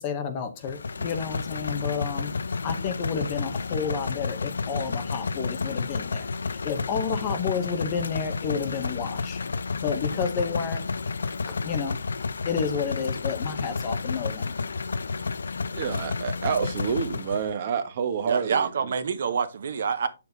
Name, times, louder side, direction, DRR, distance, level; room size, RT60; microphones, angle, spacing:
voice 1, 0.0-2.3 2.6-9.4 9.8-10.8 11.3-11.4 11.6-12.0 12.4-14.5, left 6 dB, 20° left, 0.7 m, -31 dB
sound 1, 0.6-17.5, left 4 dB, 80° left, 0.6 m, -31 dB
voice 2, 15.7-18.9, right 7 dB, 25° right, 1.0 m, -28 dB
voice 3, 18.3-20.1, right 6 dB, 45° right, 0.8 m, -27 dB
8.1 x 6.9 x 2.7 m
hypercardioid pair, 180°, 0 cm